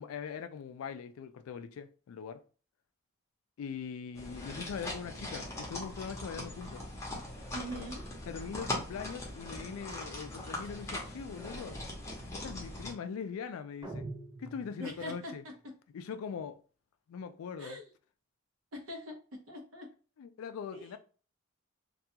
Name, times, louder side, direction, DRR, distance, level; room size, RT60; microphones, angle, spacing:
voice 1, 0.0-2.4 3.6-6.8 8.3-11.8 12.3-14.1 14.4-15.4 15.9-16.6 17.1-17.8 20.2-21.0, left 6 dB, 80° left, 0.3 m, -41 dB
sound 1, 4.1-12.9, left 1 dB, 15° left, 0.7 m, -41 dB
voice 2, 7.5-8.0 14.8-15.3 17.6-17.8 18.7-19.2 19.5-19.9 20.7-21.0, equal, 75° right, 0.7 m, -42 dB
sound 2, 13.8-15.3, right 2 dB, 15° right, 0.3 m, -44 dB
2.3 x 2.2 x 2.8 m
head